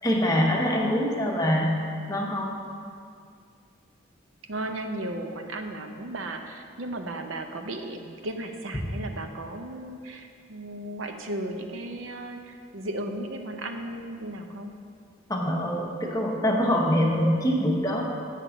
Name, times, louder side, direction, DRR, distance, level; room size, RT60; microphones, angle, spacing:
voice 1, 0.0-1.7 2.1-2.6 15.3-18.0, equal, 20° left, -1 dB, 0.9 m, -24 dB
voice 2, 4.5-14.7, right 1 dB, 75° right, 5 dB, 0.6 m, -35 dB
8.4 x 5.8 x 5.0 m, 2.3 s
head